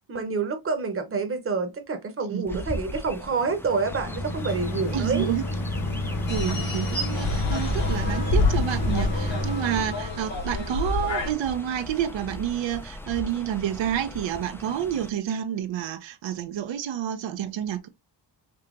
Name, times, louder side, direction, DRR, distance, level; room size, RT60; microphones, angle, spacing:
voice 1, 0.1-5.2, right 4 dB, 30° right, 0.8 m, -28 dB
voice 2, 2.3-2.6 4.9-5.4 6.3-17.9, right 10 dB, 85° right, 0.7 m, -29 dB
Chirp tweet, 2.5-15.1, left 1 dB, 5° left, 0.3 m, -39 dB
sound 1, 3.6-10.2, left 1 dB, 50° left, 1.2 m, -30 dB
sound 2, 6.3-11.3, left 3 dB, 80° left, 2.1 m, -27 dB
5.0 x 2.8 x 2.4 m
cardioid pair, 110°, 44 cm